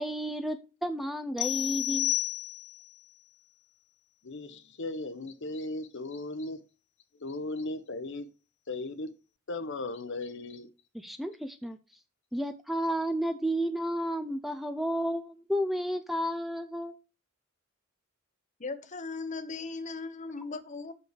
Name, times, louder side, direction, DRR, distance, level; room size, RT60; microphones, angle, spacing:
voice 1, 0.0-2.1 10.9-11.8 12.3-16.9, equal, ahead, 0.5 m, -32 dB
sound 1, 1.4-2.9, left 16 dB, 80° left, 0.3 m, -31 dB
voice 2, 4.2-6.6 7.2-8.3 8.7-9.1 9.5-10.7, left 2 dB, 60° left, 0.8 m, -37 dB
voice 3, 18.6-20.9, left 3 dB, 35° left, 0.9 m, -38 dB
6.2 x 5.3 x 6.6 m
head